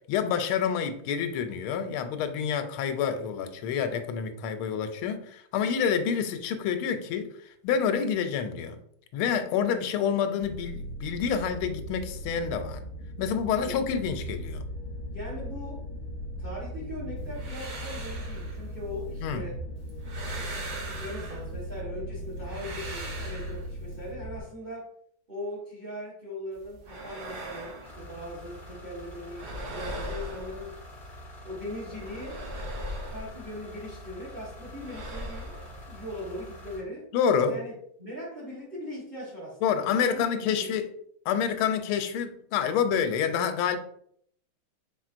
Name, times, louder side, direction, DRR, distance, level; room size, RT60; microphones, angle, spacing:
voice 1, 0.1-8.8 9.1-12.8 13.2-14.6 19.2-19.4 37.1-37.6 39.6-40.9 41.3-43.8, left 7 dB, 85° left, 9 dB, 1.4 m, -28 dB
sound 1, 10.4-24.4, equal, 65° left, 0.8 m, -38 dB
voice 2, 13.6-13.9 15.1-15.9 16.4-19.6 20.3-24.9 25.3-30.8 31.4-32.4 33.0-35.6 35.9-37.1 37.5-37.7 38.0-40.7, left 1 dB, 30° right, -4 dB, 1.2 m, -40 dB
sound 2, 17.2-19.4 19.8-21.8 22.2-24.1 26.5-28.7 29.0-31.2 31.6-34.1 34.4-36.8, right 1 dB, 55° right, 1.5 m, -41 dB
sound 3, 27.8-36.8, equal, 20° left, 0.8 m, -46 dB
4.4 x 4.2 x 2.5 m, 0.66 s
omnidirectional pair, 2.3 m